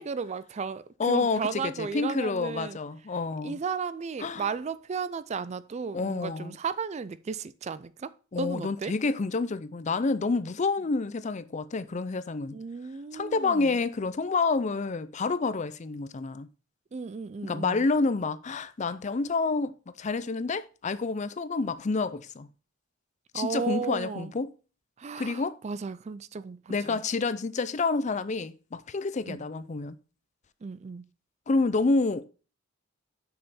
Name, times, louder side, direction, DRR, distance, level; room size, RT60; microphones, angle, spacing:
voice 1, 0.0-2.8 3.4-8.1 8.4-8.9 12.5-13.7 16.9-17.9 23.3-24.3 25.0-27.0 29.3-29.4 30.6-31.1, right 5 dB, 35° right, 0.4 m, -34 dB
voice 2, 1.0-3.6 4.2-4.5 5.9-6.6 8.3-12.6 13.1-16.5 17.4-22.5 23.3-24.5 25.2-25.6 26.7-30.0 31.5-32.3, left 3 dB, 35° left, 0.5 m, -28 dB
6.7 x 5.6 x 5.5 m
head